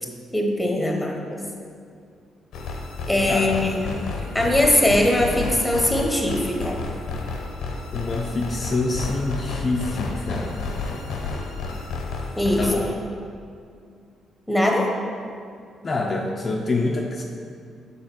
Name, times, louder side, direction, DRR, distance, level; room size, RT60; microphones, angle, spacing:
voice 1, 0.3-1.4 3.1-4.0 4.3-6.8 12.4-12.7 14.5-14.9, left 1 dB, 5° left, 1 dB, 1.1 m, -21 dB
sound 1, 2.5-12.8, left 3 dB, 80° left, 0.9 m, -31 dB
voice 2, 3.3-3.6 7.9-10.6 12.6-12.9 15.8-17.2, left 2 dB, 35° left, -1 dB, 0.6 m, -26 dB
6.5 x 3.7 x 5.9 m, 2.3 s
cardioid pair, 90°, 0 cm